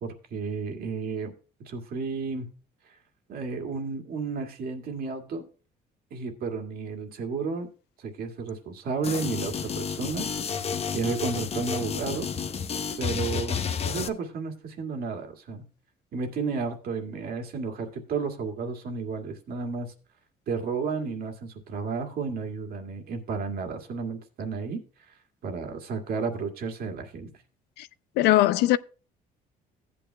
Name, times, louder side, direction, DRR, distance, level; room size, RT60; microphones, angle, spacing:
voice 1, 0.0-1.3 1.6-2.5 2.9-3.0 3.3-5.5 6.1-7.7 8.0-10.3 10.9-12.3 13.0-15.6 16.1-19.9 20.5-27.3, right 4 dB, 60° right, 1.9 m, -32 dB
sound 1, 9.0-14.1, left 6 dB, 35° left, 0.8 m, -31 dB
voice 2, 28.2-28.8, left 15 dB, 80° left, 0.5 m, -20 dB
15.0 x 8.7 x 2.2 m
cardioid pair, 110°, 17 cm